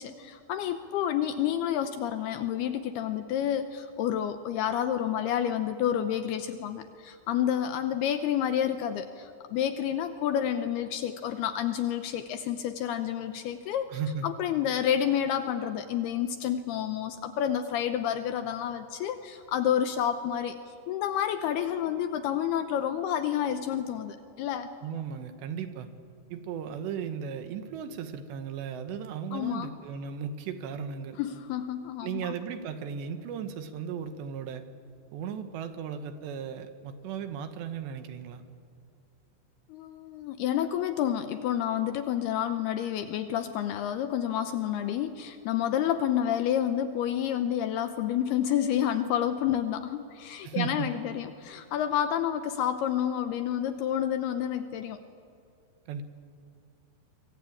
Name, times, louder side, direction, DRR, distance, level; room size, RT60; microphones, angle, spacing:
voice 1, 0.0-13.9 14.2-20.6 20.9-24.7 29.3-29.7 31.2-32.3 39.7-55.0, left 10 dB, 75° left, 9 dB, 2.5 m, -29 dB
voice 2, 13.9-14.3 24.8-25.9 26.3-31.2 32.0-34.6 35.1-38.4 50.4-50.9 55.9-56.0, right 7 dB, 75° right, 8 dB, 3.3 m, -36 dB
24.0 x 24.0 x 8.7 m, 2.4 s
omnidirectional pair, 5.3 m